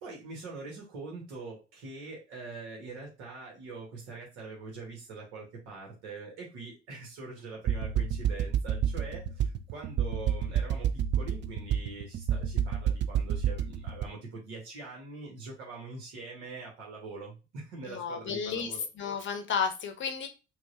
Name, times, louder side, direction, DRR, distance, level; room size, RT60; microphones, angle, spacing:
voice 1, 0.0-18.8, right 3 dB, 55° right, 1.4 m, -43 dB
sound 1, 7.7-14.0, right 8 dB, 35° right, 0.5 m, -29 dB
voice 2, 17.8-20.3, left 6 dB, 35° left, 0.9 m, -32 dB
4.5 x 2.4 x 2.7 m
figure-of-eight pair, 55°, 33 cm